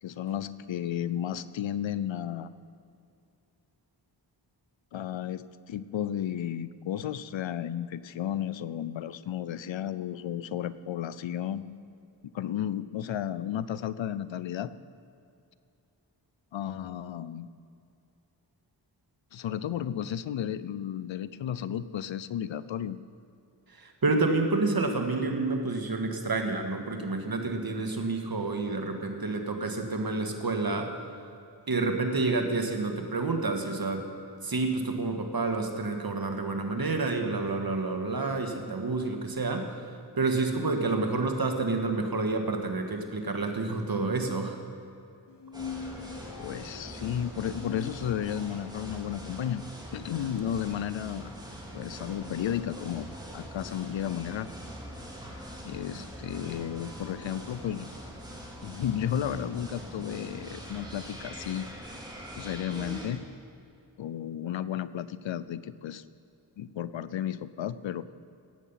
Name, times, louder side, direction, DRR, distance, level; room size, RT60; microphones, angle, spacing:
voice 1, 0.0-2.5 4.9-11.7 12.3-14.7 16.5-17.5 19.3-23.0 46.4-49.6 49.9-51.3 51.7-53.1 53.3-54.5 55.6-57.9 58.6-61.7 62.4-63.2 64.0-66.0 66.6-68.0, left 10 dB, 80° left, 16 dB, 0.6 m, -33 dB
voice 2, 23.7-30.9 31.7-34.1 34.4-39.8 40.2-44.6, right 3 dB, 50° right, 4 dB, 1.8 m, -29 dB
sound 1, 45.3-48.7, left 6 dB, 65° left, 1.0 m, -43 dB
sound 2, 45.5-63.1, equal, 10° right, 3.1 m, -43 dB
18.0 x 8.5 x 5.7 m, 2.5 s
cardioid pair, 45°, 45 cm